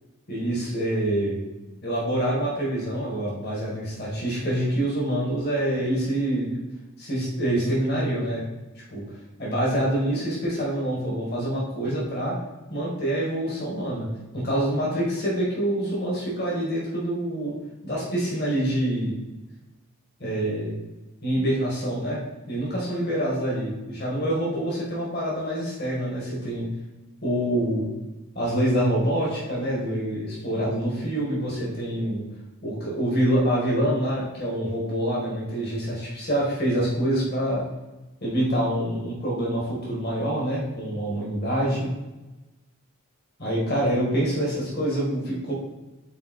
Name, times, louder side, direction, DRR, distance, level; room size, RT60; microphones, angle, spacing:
voice 1, 0.3-1.4 1.8-6.6 7.0-8.4 8.9-9.0 9.4-12.4 12.7-14.1 14.3-17.5 17.8-19.2 20.2-20.7 21.2-22.2 22.5-26.7 27.2-27.8 28.4-32.2 32.6-37.6 38.2-41.9 43.4-45.5, right 1 dB, 45° left, -4 dB, 2.1 m, -26 dB
5.7 x 4.3 x 4.6 m, 1.0 s
head